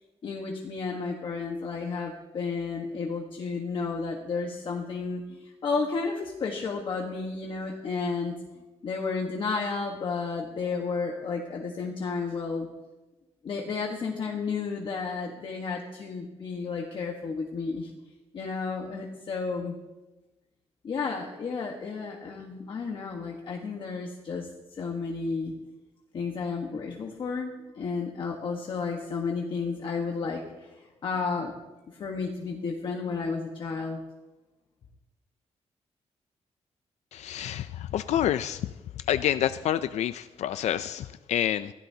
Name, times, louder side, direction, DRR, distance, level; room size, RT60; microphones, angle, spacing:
voice 1, 0.2-8.3 8.8-12.7 13.4-17.9 18.3-19.7 20.8-25.5 26.1-31.5 32.0-34.0, left 4 dB, 45° left, 0 dB, 1.3 m, -32 dB
voice 2, 37.1-38.6 39.1-41.7, left 11 dB, 90° left, 12 dB, 0.4 m, -28 dB
23.5 x 16.0 x 2.8 m, 1.1 s
wide cardioid pair, 180°, 11 cm